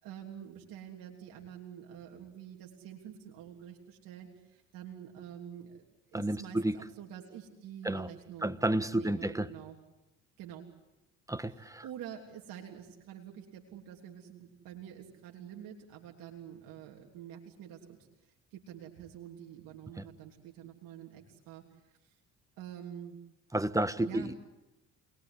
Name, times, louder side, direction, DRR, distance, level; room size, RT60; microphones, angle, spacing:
voice 1, 0.0-5.8 6.1-8.5 8.9-9.7 10.4-10.6 11.8-18.0 18.5-21.6 22.0-22.1 22.6-23.2 24.0-24.3, right 9 dB, 75° right, 3.4 m, -47 dB
voice 2, 6.1-6.9 7.8-8.1 8.4-9.5 11.3-11.8 20.0-20.1 23.5-24.3, right 1 dB, 10° right, 1.4 m, -31 dB
28.5 x 21.0 x 9.9 m
supercardioid pair, 80°, 33 cm